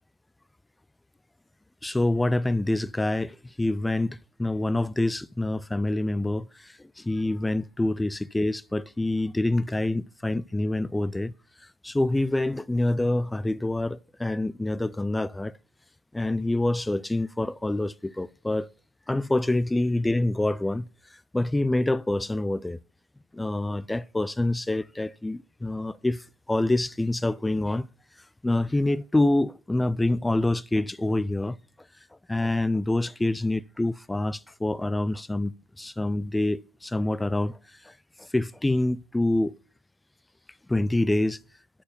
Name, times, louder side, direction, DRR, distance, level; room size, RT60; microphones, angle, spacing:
voice 1, 1.8-11.3 11.8-15.5 16.1-18.7 19.1-20.9 21.3-22.8 23.3-27.9 28.4-31.6 32.3-37.6 37.8-37.9 38.2-39.6 40.7-41.4, left 2 dB, 5° left, 0.3 m, -26 dB
11.5 x 4.7 x 5.5 m
supercardioid pair, 125°, 0 cm